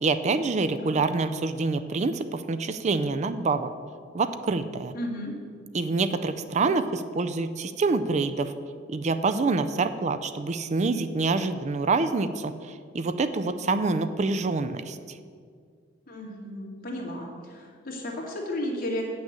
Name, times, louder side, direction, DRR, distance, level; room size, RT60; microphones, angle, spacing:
voice 1, 0.0-3.7 4.1-4.9 5.7-8.5 8.9-15.0, right 3 dB, 40° right, 10 dB, 0.4 m, -26 dB
voice 2, 4.9-5.3 16.1-19.0, left 1 dB, 50° left, -2 dB, 2.1 m, -34 dB
8.6 x 6.3 x 7.4 m, 2.1 s
head